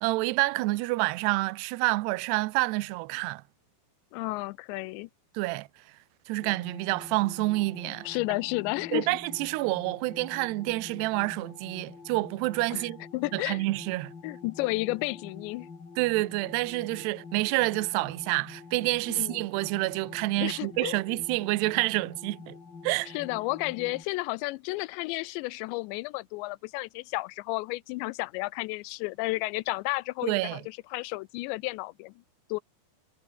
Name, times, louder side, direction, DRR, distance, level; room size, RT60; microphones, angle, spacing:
voice 1, 0.0-3.4 5.3-5.7 6.3-8.1 8.9-13.0 13.3-14.1 16.0-22.6 22.8-23.1 30.2-30.6, right 21 dB, 75° right, 2.7 m, -28 dB
voice 2, 4.1-5.1 8.1-9.1 12.7-12.8 13.1-13.6 14.2-15.7 19.1-19.4 20.4-21.0 23.1-32.1 32.5-32.6, left 22 dB, 85° left, 2.8 m, -32 dB
sound 1, 6.4-24.0, left 4 dB, 30° left, 3.1 m, -47 dB
omnidirectional pair, 5.2 m